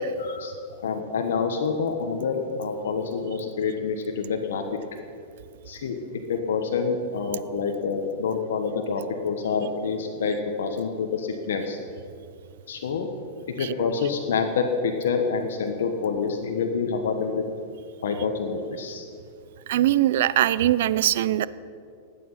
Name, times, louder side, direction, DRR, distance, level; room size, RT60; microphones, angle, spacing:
voice 1, 0.2-4.6 5.6-6.0 6.3-11.8 12.7-13.1 13.6-17.4 18.0-19.1, left 5 dB, 85° left, 3 dB, 1.2 m, -27 dB
voice 2, 19.7-21.5, right 13 dB, 70° right, 17 dB, 0.5 m, -21 dB
19.0 x 8.5 x 5.7 m, 2.4 s
hypercardioid pair, 130°, 0 cm